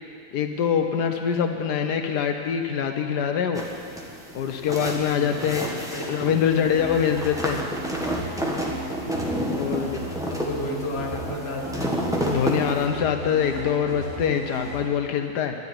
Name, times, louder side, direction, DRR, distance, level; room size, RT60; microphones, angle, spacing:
voice 1, 0.3-3.7 4.3-5.7 6.1-7.6 9.6-10.0 12.3-15.6, left 8 dB, 85° left, 5 dB, 1.4 m, -24 dB
sound 1, 3.5-12.8, equal, ahead, 1.5 m, -30 dB
voice 2, 5.1-6.2 9.6-10.0 10.3-12.0, left 2 dB, 40° left, 1 dB, 1.7 m, -34 dB
sound 2, 6.5-14.8, right 1 dB, 50° right, 2.5 m, -36 dB
12.0 x 11.0 x 9.8 m, 2.4 s
omnidirectional pair, 1.7 m